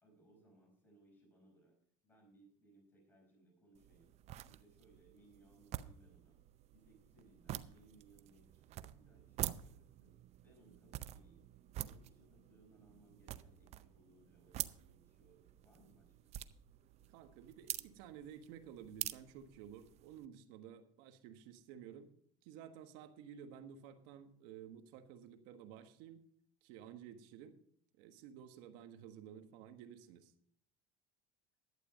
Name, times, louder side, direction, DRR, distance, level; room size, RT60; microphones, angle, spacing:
voice 1, 0.0-1.8 2.0-4.1 4.4-6.4 6.7-10.1 10.4-11.4 11.8-16.3, right 2 dB, 10° left, 1 dB, 4.7 m, -67 dB
sound 1, 3.7-20.3, right 13 dB, 45° right, 0.5 m, -48 dB
voice 2, 17.1-22.1 22.4-26.2 26.6-27.6 28.0-30.3, right 9 dB, 70° right, 9 dB, 1.4 m, -53 dB
11.5 x 8.5 x 5.2 m, 0.63 s
supercardioid pair, 120°, 16 cm